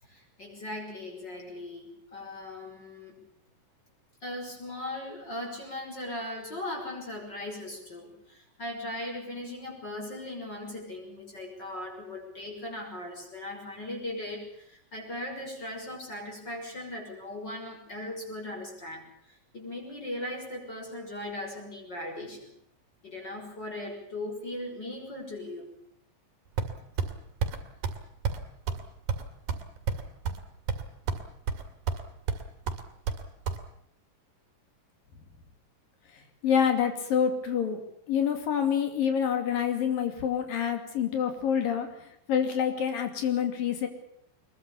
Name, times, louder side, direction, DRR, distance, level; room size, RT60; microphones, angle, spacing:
voice 1, 0.0-3.2 4.2-22.5 23.0-25.7, left 1 dB, 30° left, 1 dB, 6.8 m, -38 dB
sound 1, 26.6-27.1 27.4-27.6 27.8-28.0 28.2-28.4 28.7-28.8 29.1-30.4 30.7-31.2 31.5-32.0 32.3-33.6, right 6 dB, 75° right, 3.8 m, -30 dB
voice 2, 36.4-37.8 38.1-41.9 42.3-43.9, left 8 dB, 75° left, 6 dB, 4.3 m, -27 dB
23.5 x 22.0 x 7.0 m, 0.71 s
omnidirectional pair, 4.0 m